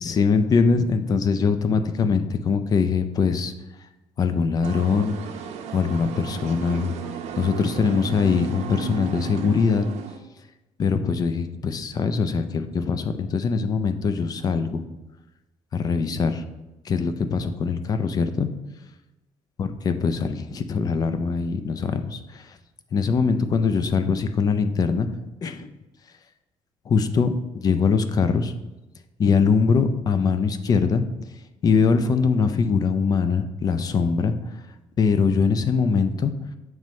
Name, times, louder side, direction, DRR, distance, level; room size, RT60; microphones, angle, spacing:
voice 1, 0.0-3.5 4.2-5.2 5.7-6.9 7.4-9.8 10.8-14.8 15.7-16.4 16.9-18.5 19.6-22.6 22.9-25.1 25.4-25.7 26.9-28.5 29.2-31.0 31.6-34.3 35.0-36.3, left 5 dB, 35° left, 9 dB, 0.4 m, -22 dB
Town square or yard in front of church, 4.6-10.2, right 7 dB, 85° right, 0.7 m, -34 dB
7.3 x 3.1 x 5.1 m, 1.0 s
cardioid pair, 140°, 11 cm